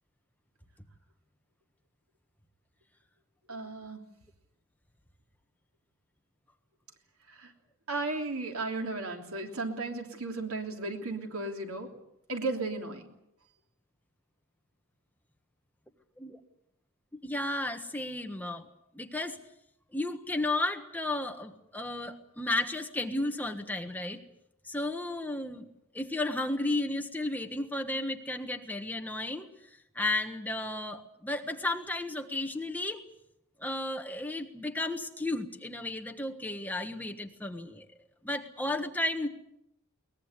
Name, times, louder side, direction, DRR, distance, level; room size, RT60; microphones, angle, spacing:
voice 1, 3.5-4.0 7.3-7.5 7.9-11.9 12.3-13.1, right 3 dB, 80° right, 3 dB, 3.2 m, -35 dB
voice 2, 17.2-18.6 18.9-19.4 19.9-24.2 24.6-25.7 25.9-29.5 29.9-33.0 33.6-37.9 38.2-39.3, left 2 dB, 10° left, 5 dB, 1.4 m, -33 dB
22.5 x 20.5 x 8.2 m, 0.81 s
head